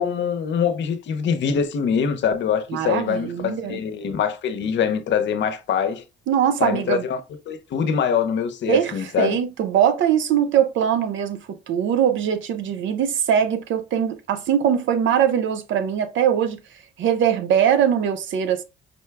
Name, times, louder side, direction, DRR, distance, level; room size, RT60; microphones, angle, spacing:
voice 1, 0.0-6.0 6.6-7.2 7.5-9.4, left 7 dB, 65° left, 0.7 m, -23 dB
voice 2, 2.7-3.8 6.3-7.0 8.7-16.6 17.0-18.6, right 9 dB, 75° right, 0.6 m, -21 dB
5.2 x 2.2 x 3.3 m
cardioid pair, 90°, 20 cm